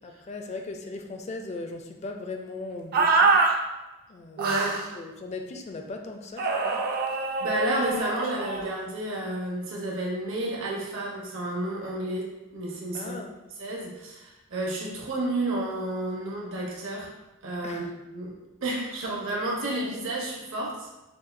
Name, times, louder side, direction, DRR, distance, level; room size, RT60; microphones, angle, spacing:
voice 1, 0.0-3.4 4.1-4.6 4.9-6.9 12.9-13.4 17.6-17.9, left 3 dB, 30° left, 4 dB, 0.4 m, -38 dB
sound 1, 2.9-3.5 4.4-4.9 6.4-8.7, right 4 dB, 45° right, 0.4 m, -24 dB
voice 2, 4.4-4.8 7.4-13.1 13.6-17.1 17.4-18.3 18.6-20.9, right 1 dB, 65° right, -3 dB, 1.0 m, -31 dB
6.6 x 2.3 x 2.5 m, 1.0 s
head